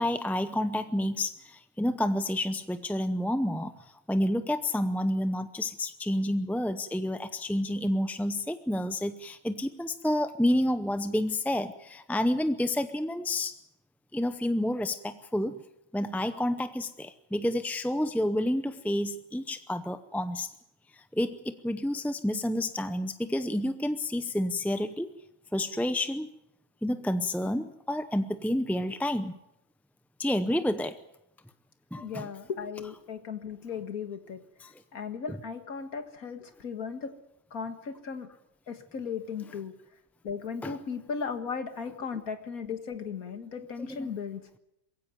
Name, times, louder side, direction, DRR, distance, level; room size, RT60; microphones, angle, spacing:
voice 1, 0.0-13.6 14.1-15.6 15.9-20.5 20.9-25.1 25.5-26.3 26.8-29.4 30.2-31.0 31.9-32.3 34.6-34.7 35.3-35.4 40.6-40.8 43.8-44.1, left 1 dB, ahead, 11 dB, 0.4 m, -29 dB
voice 2, 32.0-34.4 34.9-37.2 37.5-38.3 38.7-39.7 40.2-44.4, left 6 dB, 85° left, 9 dB, 2.2 m, -36 dB
22.0 x 16.0 x 9.4 m, 0.84 s
omnidirectional pair, 1.5 m